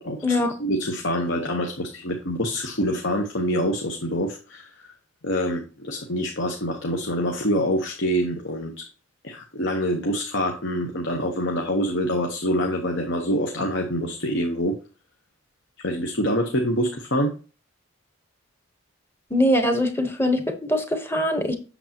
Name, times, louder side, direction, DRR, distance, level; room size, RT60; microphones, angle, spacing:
voice 1, 0.0-4.9 5.2-8.9 9.2-14.8 15.8-17.3, equal, 55° left, 1.1 m, -26 dB
voice 2, 19.3-21.6, left 1 dB, 10° left, 1.0 m, -22 dB
8.2 x 6.9 x 2.9 m
head